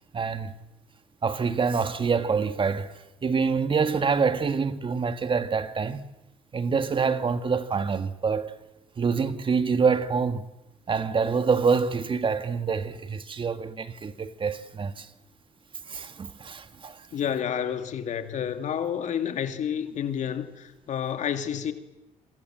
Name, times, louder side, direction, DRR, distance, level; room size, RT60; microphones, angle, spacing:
voice 1, 0.1-0.6 1.2-2.9 3.2-6.1 6.5-8.6 9.0-10.5 10.9-15.1 15.9-17.0, right 5 dB, 40° right, 1.8 m, -26 dB
voice 2, 17.1-21.7, left 8 dB, 65° left, 2.6 m, -30 dB
27.0 x 24.0 x 7.7 m
cardioid pair, 80°, 13 cm